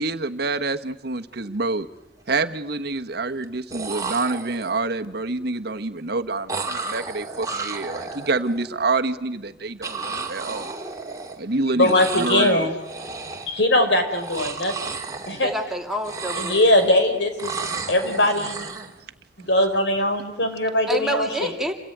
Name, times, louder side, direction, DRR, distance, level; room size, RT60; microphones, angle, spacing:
voice 1, 0.0-1.9 2.3-10.7 11.4-12.7, right 3 dB, 60° right, 6 dB, 1.3 m, -27 dB
sound 1, 1.3-1.5 1.8-2.4 3.4-3.5 3.7-4.9 6.5-8.7 9.8-11.5 11.8-12.5 12.8-13.6 14.1-15.7 16.0-17.0 17.4-18.9, right 4 dB, 20° right, 2.1 m, -33 dB
voice 2, 11.8-12.7 13.5-15.0 15.3-15.5 16.4-17.5 17.9-18.7 19.5-21.5, left 1 dB, 80° left, 6 dB, 4.6 m, -21 dB
voice 3, 15.4-16.7 20.9-21.7, equal, ahead, 2 dB, 2.6 m, -28 dB
28.5 x 17.5 x 9.4 m, 1.0 s
head